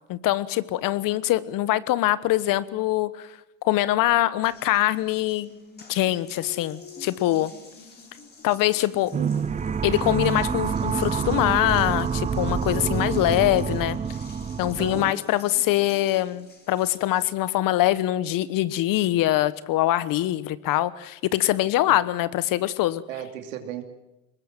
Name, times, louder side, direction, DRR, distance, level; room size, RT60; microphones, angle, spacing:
voice 1, 0.1-3.3 3.6-5.5 5.9-7.5 8.4-9.1 9.8-14.0 14.6-23.0, left 15 dB, 55° left, 17 dB, 1.2 m, -23 dB
Water tap faucet, 4.4-17.2, left 4 dB, 25° left, 4.6 m, -47 dB
sound 1, 9.1-15.1, right 6 dB, 20° right, 0.7 m, -27 dB
voice 2, 9.1-9.5 14.8-15.2 21.9-22.0 23.1-23.8, right 11 dB, 85° right, 5 dB, 2.8 m, -34 dB
23.0 x 20.0 x 7.5 m, 0.97 s
hypercardioid pair, 85°, 39 cm